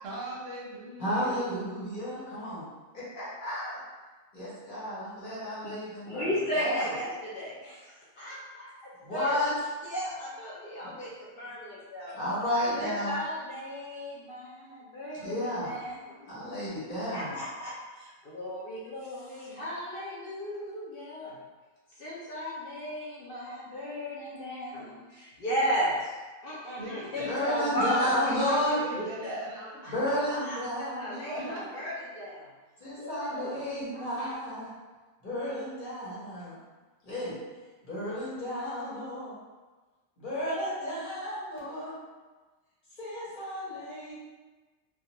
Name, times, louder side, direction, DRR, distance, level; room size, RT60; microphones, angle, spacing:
voice 1, 0.0-1.5 26.8-29.8 30.1-30.4 31.3-31.8, right 1 dB, 60° right, -4 dB, 0.8 m, -40 dB
voice 2, 1.0-2.6 2.9-3.8 4.3-6.3 6.5-6.9 9.0-9.5 10.8-10.9 12.1-13.1 15.2-15.8 16.3-17.4 27.3-28.8 29.8-31.5 32.8-34.7 35.2-36.6 37.0-37.3 37.8-39.4 40.2-41.9 43.0-44.1, equal, 40° left, -9 dB, 1.0 m, -32 dB
voice 3, 5.6-9.4 9.8-12.2 12.7-16.3 17.1-21.4 22.0-26.1 26.4-29.4 29.8-29.9 30.3-32.5 32.9-33.6 33.9-34.3, equal, 60° left, -7 dB, 0.6 m, -35 dB
2.3 x 2.3 x 2.8 m, 1.3 s
omnidirectional pair, 1.4 m